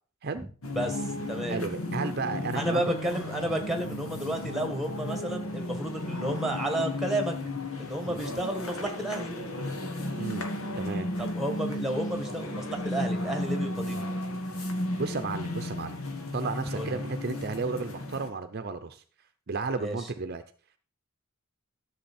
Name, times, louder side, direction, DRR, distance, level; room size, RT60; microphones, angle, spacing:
sound 1, 0.6-18.3, left 1 dB, 85° left, 1.7 m, -34 dB
voice 1, 0.7-1.6 2.5-7.3 7.8-9.3 11.2-14.1 16.7-17.0 19.8-20.0, right 1 dB, ahead, 5 dB, 1.7 m, -31 dB
voice 2, 1.5-2.8 8.0-8.3 10.1-10.5 10.8-11.1 15.0-16.0 16.3-19.0 19.5-20.4, right 4 dB, 50° right, 9 dB, 0.7 m, -33 dB
13.0 x 6.5 x 4.4 m, 0.40 s
head